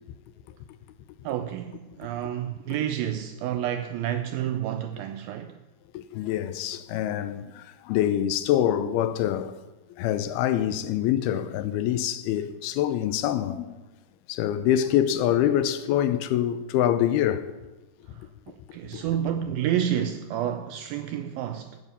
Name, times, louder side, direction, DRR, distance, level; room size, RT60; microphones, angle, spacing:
voice 1, 1.2-5.6 18.1-21.8, right 10 dB, 80° right, 2.2 m, -30 dB
voice 2, 5.9-9.5 10.0-13.8 14.3-17.5 18.9-19.1, left 11 dB, 80° left, 2.5 m, -25 dB
12.5 x 8.9 x 6.7 m
omnidirectional pair, 4.6 m